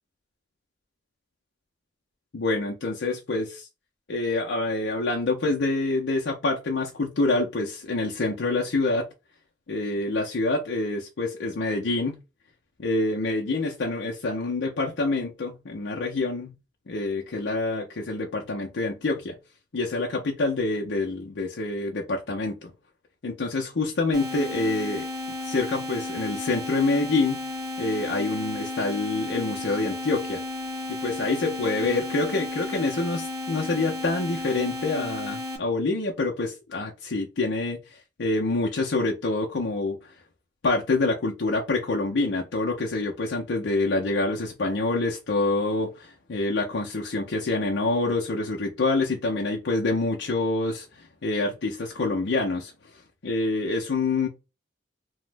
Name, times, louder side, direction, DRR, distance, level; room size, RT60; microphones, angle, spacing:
voice 1, 2.3-3.7 4.1-9.1 9.7-12.2 12.8-16.5 16.9-19.3 19.7-22.7 23.2-25.0 25.4-27.4 27.8-30.4 30.9-37.8 38.2-40.0 40.6-52.7 53.2-54.3, left 3 dB, 70° left, 0.6 m, -26 dB
sound 1, 24.1-35.6, left 2 dB, 20° right, 0.6 m, -33 dB
3.0 x 2.1 x 3.2 m
head